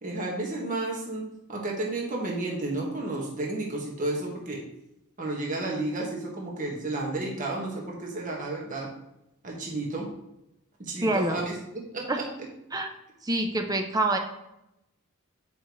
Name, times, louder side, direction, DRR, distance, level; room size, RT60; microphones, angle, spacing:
voice 1, 0.0-1.2 1.5-4.6 5.2-8.9 9.4-10.1 10.8-11.5 11.9-12.2, right 2 dB, 35° right, -1 dB, 1.5 m, -32 dB
voice 2, 11.0-11.4 12.1-12.2 12.7-12.9 13.2-14.2, right 2 dB, 15° right, 5 dB, 0.6 m, -26 dB
8.7 x 5.3 x 3.1 m, 0.86 s
head